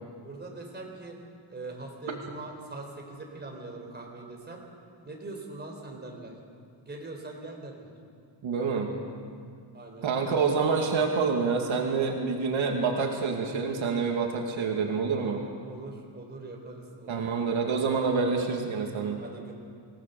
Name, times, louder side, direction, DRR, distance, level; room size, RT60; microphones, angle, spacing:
voice 1, 0.2-1.2 1.5-4.6 5.0-6.3 6.8-7.9 9.7-10.3 15.6-17.9 18.5-18.6 19.2-19.5, right 2 dB, 20° right, 0 dB, 4.3 m, -42 dB
voice 2, 8.4-8.9 10.0-15.4 17.1-19.2, right 5 dB, 75° right, 1 dB, 2.5 m, -27 dB
27.0 x 17.5 x 7.0 m, 2.2 s
wide cardioid pair, 145°, 47 cm